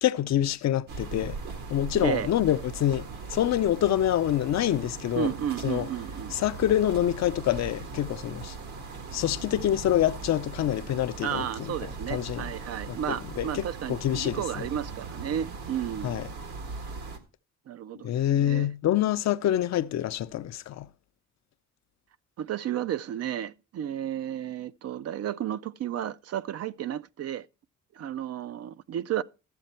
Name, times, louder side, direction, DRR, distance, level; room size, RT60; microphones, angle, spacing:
voice 1, 0.0-1.4 1.7-5.3 5.6-5.9 6.3-8.6 9.1-11.8 12.1-12.5 12.9-14.7 16.0-16.3 18.0-20.9, left 12 dB, 60° left, 0.6 m, -26 dB
sound 1, 0.9-17.2, right 4 dB, 75° right, 1.7 m, -39 dB
voice 2, 1.9-2.3 5.2-6.4 11.2-16.2 17.7-18.7 22.4-27.5 28.0-29.2, right 10 dB, 55° right, 0.5 m, -32 dB
13.0 x 7.4 x 4.3 m
cardioid pair, 90°, 30 cm